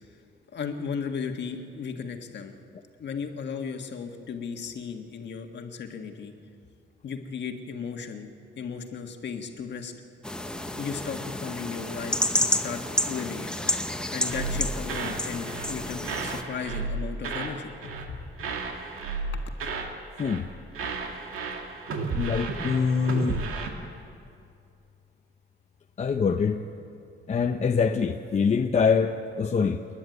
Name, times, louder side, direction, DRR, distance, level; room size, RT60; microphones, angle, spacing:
voice 1, 0.5-2.5 3.0-6.3 7.0-8.3 8.5-9.9 10.8-13.5 14.1-18.5 19.3-19.4, left 6 dB, 55° left, 5 dB, 1.7 m, -35 dB
sound 1, 10.2-16.4, left 1 dB, 5° left, 0.9 m, -30 dB
sound 2, 14.3-15.2 15.5-15.8 16.0-17.6 17.8-18.1 18.4-19.9 20.2-20.5 20.7-23.7, right 3 dB, 90° right, 2.2 m, -33 dB
voice 2, 22.1-23.4 26.0-26.6 27.3-29.8, left 5 dB, 35° left, 5 dB, 0.7 m, -24 dB
29.5 x 10.5 x 9.4 m, 2.5 s
cardioid pair, 150°, 21 cm